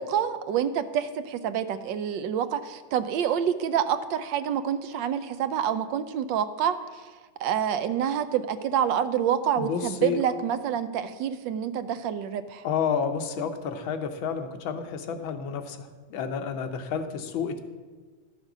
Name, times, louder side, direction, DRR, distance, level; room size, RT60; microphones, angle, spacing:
voice 1, 0.0-7.0 7.4-12.6, right 9 dB, 75° right, 12 dB, 1.2 m, -27 dB
voice 2, 9.6-10.2 12.6-17.6, left 6 dB, 85° left, 7 dB, 1.6 m, -30 dB
12.5 x 6.5 x 6.0 m, 1.4 s
omnidirectional pair, 2.1 m